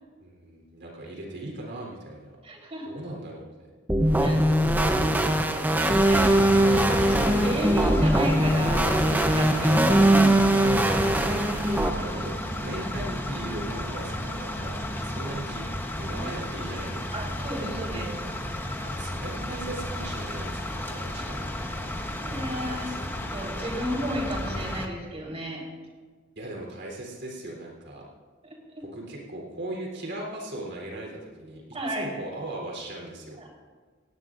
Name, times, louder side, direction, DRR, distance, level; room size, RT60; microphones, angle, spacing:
voice 1, 0.2-2.4 2.9-3.5 11.3-11.6 11.9-12.4 12.6-15.6 16.0-17.0 18.8-21.6 22.8-23.0 26.4-28.0 28.9-31.6 31.9-33.4, right 1 dB, 60° right, -1 dB, 3.8 m, -38 dB
voice 2, 2.4-3.0 4.2-4.4 4.8-6.4 6.8-10.6 17.1-18.2 22.2-22.9 23.3-25.6 28.4-28.8 31.7-32.1 33.4-33.5, equal, 30° right, -2 dB, 4.2 m, -34 dB
sound 1, 3.9-11.9, right 1 dB, 10° right, 0.8 m, -21 dB
bed waiting for ferry, 6.0-24.9, left 1 dB, 10° left, 1.1 m, -33 dB
18.5 x 17.0 x 2.6 m, 1.5 s
head